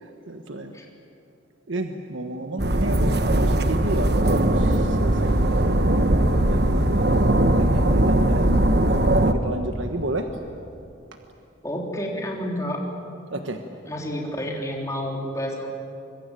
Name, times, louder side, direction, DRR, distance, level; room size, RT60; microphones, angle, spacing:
voice 1, 0.0-0.7 1.7-10.3 13.3-13.6, right 1 dB, 80° right, 5 dB, 1.4 m, -32 dB
sound 1, 2.6-9.3, right 1 dB, 55° right, 1.3 m, -20 dB
voice 2, 11.6-12.8 13.9-15.7, equal, 15° left, -1 dB, 3.5 m, -29 dB
25.0 x 23.0 x 9.2 m, 2.7 s
head